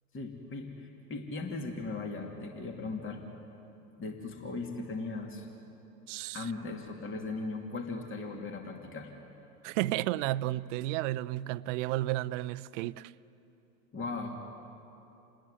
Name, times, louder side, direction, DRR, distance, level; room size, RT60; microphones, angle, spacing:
voice 1, 0.1-3.2 4.0-5.5 6.3-9.1 13.9-14.4, left 3 dB, 25° left, 2.7 m, -38 dB
voice 2, 6.1-6.5 9.6-13.1, right 16 dB, 50° right, 0.7 m, -32 dB
28.5 x 19.5 x 9.5 m
figure-of-eight pair, 85°, 49 cm